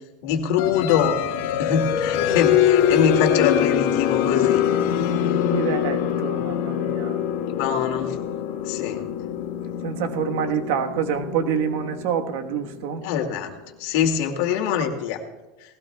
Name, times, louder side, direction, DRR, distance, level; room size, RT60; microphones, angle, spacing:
voice 1, 0.2-1.1 1.6-4.6 7.5-8.2 8.7-9.0 13.0-13.5 13.8-15.2, left 7 dB, 70° left, 3 dB, 2.2 m, -24 dB
sound 1, 0.6-13.1, left 9 dB, 85° left, 1.7 m, -24 dB
voice 2, 5.5-7.2 9.8-13.0, right 8 dB, 75° right, 6 dB, 1.2 m, -27 dB
19.0 x 16.5 x 2.3 m, 1.1 s
supercardioid pair, 150°, 0 cm